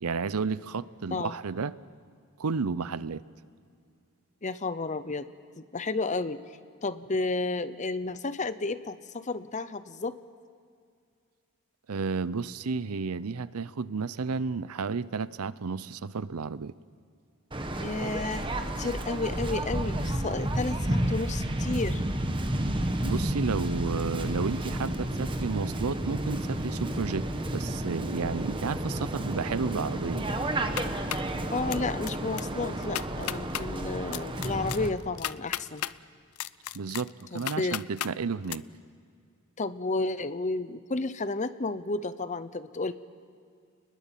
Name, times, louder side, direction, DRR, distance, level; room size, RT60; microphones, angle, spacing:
voice 1, 0.0-1.7 2.4-3.2 11.9-16.7 23.0-27.2 27.5-30.4 36.7-38.6, right 4 dB, 85° right, 17 dB, 0.6 m, -32 dB
voice 2, 4.4-5.3 5.6-6.4 6.8-10.1 17.8-22.0 31.5-35.9 37.3-37.8 39.6-42.9, left 3 dB, 35° left, 13 dB, 0.7 m, -32 dB
Waves surf, 17.5-34.9, right 1 dB, 25° right, 1.4 m, -31 dB
sound 1, 30.5-31.3 31.7-32.1 32.4-32.5 32.8-33.6 34.1-35.9 36.4-38.1 38.5-38.6, left 12 dB, 80° left, 0.5 m, -34 dB
29.5 x 21.0 x 7.5 m, 2.3 s
head